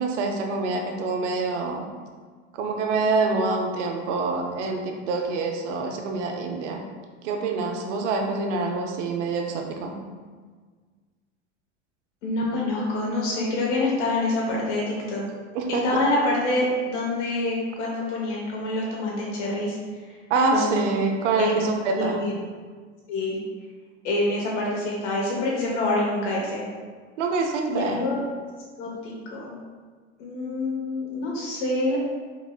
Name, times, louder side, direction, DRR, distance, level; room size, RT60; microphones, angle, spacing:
voice 1, 0.0-1.9 2.5-6.8 7.2-10.0 15.5-15.9 20.3-22.3 27.2-28.0, right 3 dB, 70° right, 3 dB, 0.7 m, -26 dB
voice 2, 12.2-15.2 15.8-19.8 20.5-21.1 21.4-21.6 21.9-22.3 23.1-23.4 24.0-26.6 27.7-28.2 28.8-29.5 30.2-32.0, left 2 dB, 70° left, -4 dB, 1.0 m, -26 dB
4.4 x 3.1 x 2.3 m, 1.5 s
hypercardioid pair, 95°, 38 cm